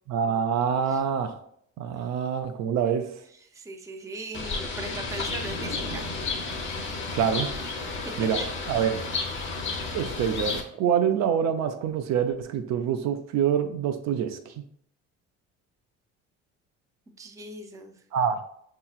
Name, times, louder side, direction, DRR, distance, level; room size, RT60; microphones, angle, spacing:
voice 1, 0.1-1.3 1.8-3.1 7.1-7.5 8.2-8.4 8.7-9.0 9.9-14.6 18.1-18.4, right 8 dB, 70° right, 7 dB, 0.5 m, -26 dB
voice 2, 3.4-6.0 6.6-7.0 8.0-8.5 17.2-18.0, right 2 dB, 10° right, 4 dB, 0.4 m, -39 dB
Bird, 4.3-10.6, left 3 dB, 40° left, 0.9 m, -32 dB
5.6 x 2.9 x 2.4 m, 0.67 s
cardioid pair, 105°, 29 cm